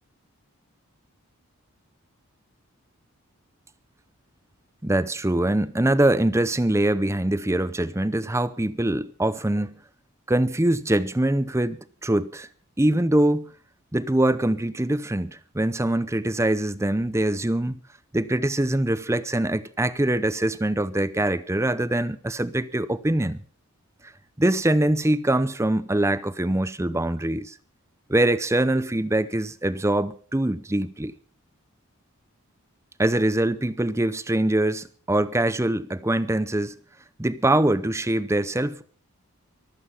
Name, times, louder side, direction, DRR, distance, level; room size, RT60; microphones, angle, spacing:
voice 1, 4.8-9.8 10.3-12.5 12.8-13.5 13.9-17.8 18.1-23.4 24.4-27.6 28.1-31.1 33.0-36.8 37.2-38.8, right 1 dB, 10° right, 0.6 m, -23 dB
23.5 x 8.5 x 5.6 m
head